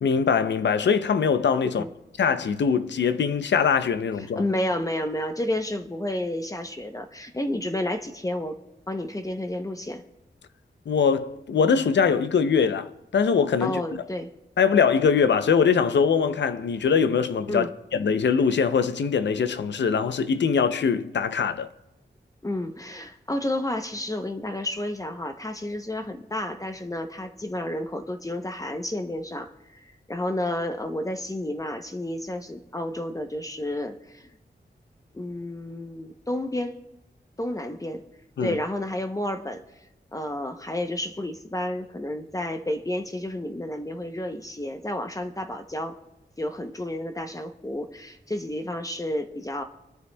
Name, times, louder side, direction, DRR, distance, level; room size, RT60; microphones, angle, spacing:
voice 1, 0.0-1.8 2.2-4.5 10.9-13.8 14.6-21.7 38.4-38.6, left 6 dB, 90° left, 0.5 m, -22 dB
voice 2, 4.2-8.6 8.9-10.0 13.6-14.3 17.5-17.7 22.4-34.3 35.1-36.8 37.4-38.0 38.4-39.6 40.1-45.9 46.4-49.6, left 1 dB, 20° left, 0.7 m, -31 dB
26.0 x 9.6 x 2.2 m
wide cardioid pair, 95°, 18 cm